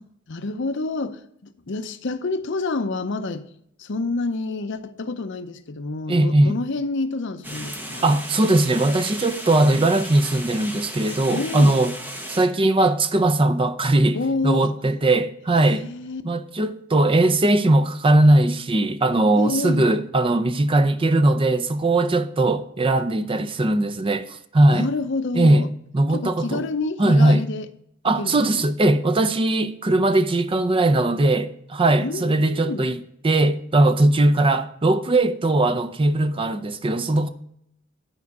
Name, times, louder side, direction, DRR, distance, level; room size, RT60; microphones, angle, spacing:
voice 1, 0.0-3.5 3.8-8.2 11.3-11.8 14.1-14.8 15.5-16.2 19.3-19.8 24.7-25.7 26.1-27.7 28.2-28.5 32.0-32.9, left 3 dB, 60° left, 0.7 m, -28 dB
voice 2, 6.1-6.6 8.0-11.9 12.3-14.2 14.4-15.9 16.2-24.9 25.3-25.7 25.9-26.7 27.0-27.4 28.0-37.3, right 2 dB, 25° right, 0.5 m, -19 dB
sound 1, 7.4-12.5, equal, 10° right, 0.9 m, -35 dB
11.0 x 4.7 x 5.4 m
head